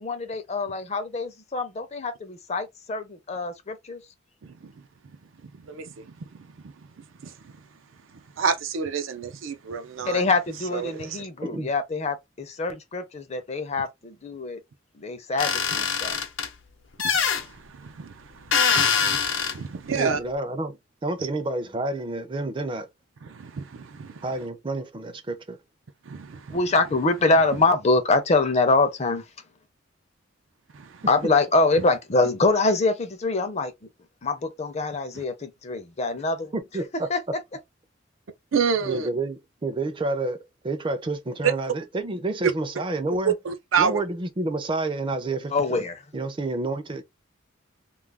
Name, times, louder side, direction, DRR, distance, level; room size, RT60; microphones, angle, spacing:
voice 1, 0.0-4.0 10.0-14.6 15.0-16.2 26.5-29.2 31.1-33.7 34.2-36.5 37.1-37.4 45.5-46.0, left 3 dB, 35° left, 0.5 m, -24 dB
voice 2, 4.4-4.7 5.4-7.6 8.1-10.2 10.7-11.3 17.0-20.2 23.2-24.3 26.1-26.6 30.7-31.1 35.1-35.2 38.5-39.1 41.4-41.5 42.4-42.5 43.3-44.0, right 6 dB, 85° right, 0.5 m, -29 dB
sound 1, 15.4-16.5 17.0-17.4 18.5-19.5, left 6 dB, 75° left, 0.7 m, -23 dB
voice 3, 19.9-20.8 21.0-22.9 24.2-25.6 36.5-37.1 38.8-40.4 40.6-43.3 43.8-45.8 46.1-47.0, right 2 dB, 25° right, 0.5 m, -29 dB
2.4 x 2.2 x 3.3 m
head